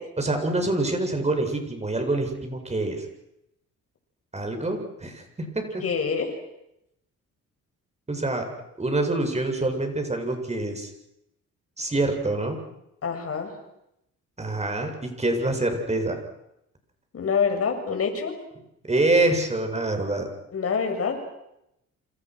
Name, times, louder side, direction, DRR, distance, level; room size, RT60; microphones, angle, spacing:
voice 1, 0.2-3.1 4.3-5.8 8.1-8.5 8.8-10.9 11.8-12.6 14.4-16.2 18.9-20.3, right 2 dB, 20° right, 5 dB, 7.9 m, -26 dB
voice 2, 5.8-6.3 13.0-13.5 17.1-18.4 20.5-21.3, left 6 dB, 50° left, 5 dB, 7.3 m, -26 dB
29.0 x 27.5 x 6.5 m, 0.83 s
cardioid pair, 90°, 30 cm